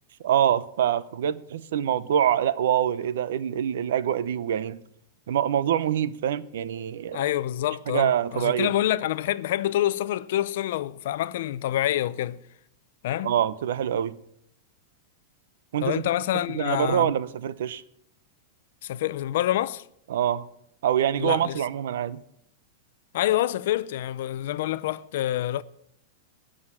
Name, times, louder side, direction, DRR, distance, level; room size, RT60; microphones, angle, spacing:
voice 1, 0.2-4.8 5.3-7.2 7.9-8.8 13.2-14.1 15.7-16.0 16.3-17.8 20.1-20.4 20.8-22.2, right 10 dB, 70° right, 0.7 m, -25 dB
voice 2, 7.1-12.4 13.0-13.3 15.8-17.1 18.8-19.8 21.2-21.6 23.1-25.6, left 13 dB, 55° left, 0.5 m, -27 dB
18.5 x 6.3 x 7.6 m
supercardioid pair, 170°, 0 cm